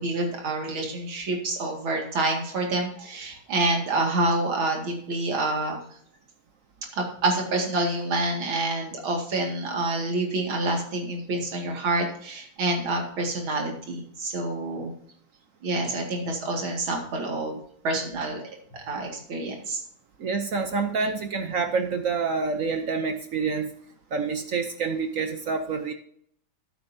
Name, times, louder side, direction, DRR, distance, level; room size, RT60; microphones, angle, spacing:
voice 1, 0.0-5.8 6.9-14.9 15.6-17.6 17.8-18.4 18.7-19.8, right 2 dB, 90° right, 2 dB, 2.9 m, -27 dB
voice 2, 20.2-23.7 24.1-25.9, right 4 dB, 60° right, 7 dB, 0.8 m, -27 dB
13.0 x 7.9 x 2.7 m, 0.64 s
omnidirectional pair, 2.2 m